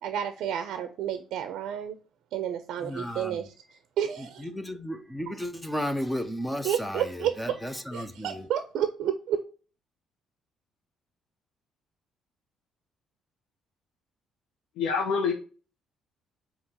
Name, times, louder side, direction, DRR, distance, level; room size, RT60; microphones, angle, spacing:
voice 1, 0.0-2.0 2.3-3.5 4.0-4.5 6.6-7.3 7.9-9.4, right 9 dB, 65° right, 0.4 m, -30 dB
voice 2, 2.8-3.4 4.2-8.5, equal, 5° left, 0.4 m, -34 dB
voice 3, 14.8-15.3, left 5 dB, 70° left, 0.6 m, -26 dB
5.2 x 2.8 x 2.8 m
cardioid pair, 175°, 0 cm